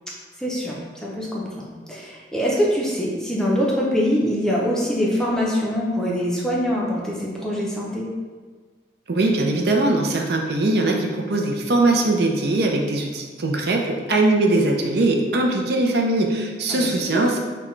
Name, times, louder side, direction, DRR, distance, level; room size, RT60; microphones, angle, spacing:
voice 1, 0.4-8.1 16.7-16.9 17.1-17.3, equal, 5° left, -4 dB, 0.6 m, -24 dB
voice 2, 9.1-17.4, right 2 dB, 60° right, 1 dB, 0.5 m, -21 dB
5.9 x 2.3 x 3.1 m, 1.5 s
head